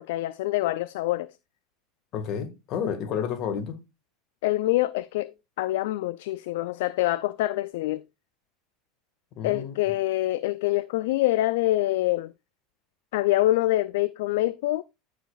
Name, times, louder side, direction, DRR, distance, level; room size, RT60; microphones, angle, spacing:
voice 1, 0.0-1.3 4.4-5.3 5.6-8.0 9.4-12.3 13.1-14.8, left 16 dB, 65° left, 0.3 m, -25 dB
voice 2, 2.1-3.8 9.4-9.8, left 7 dB, 45° left, 1.6 m, -30 dB
14.0 x 5.1 x 2.3 m
figure-of-eight pair, 80°, 0 cm